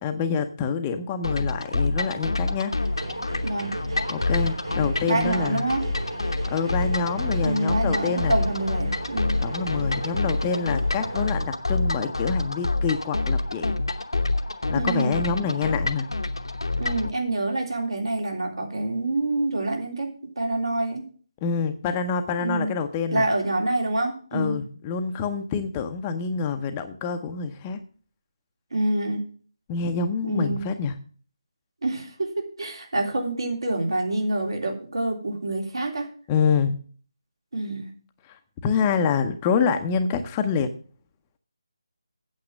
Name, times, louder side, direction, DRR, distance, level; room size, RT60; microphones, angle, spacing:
voice 1, 0.0-2.7 4.1-5.6 6.5-8.4 9.4-13.7 14.7-16.1 21.4-23.3 24.3-27.8 29.7-30.9 36.3-36.8 38.3-38.4 38.6-40.7, left 5 dB, 15° left, 7 dB, 0.7 m, -26 dB
sound 1, 1.2-17.1, left 2 dB, 75° left, 1.0 m, -27 dB
sound 2, 2.8-11.4, right 1 dB, 90° right, 5.6 m, -36 dB
voice 2, 5.1-5.8 7.4-9.4 14.7-15.2 16.8-20.1 20.4-21.0 22.4-22.7 23.1-24.6 28.7-29.2 30.2-30.6 31.8-32.3 32.6-36.1 37.5-37.9, right 2 dB, 65° right, 2 dB, 3.2 m, -26 dB
8.6 x 7.5 x 6.2 m, 0.43 s
figure-of-eight pair, 155°, 3 cm